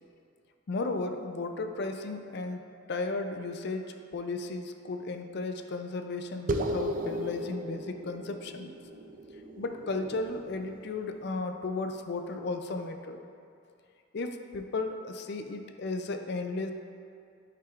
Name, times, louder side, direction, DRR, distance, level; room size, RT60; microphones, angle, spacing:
voice 1, 0.7-8.7 9.6-13.2 14.1-16.7, left 3 dB, 55° left, 6 dB, 0.4 m, -35 dB
sound 1, 6.5-11.3, right 1 dB, 40° right, 0.4 m, -36 dB
11.0 x 5.7 x 2.5 m, 2.5 s
head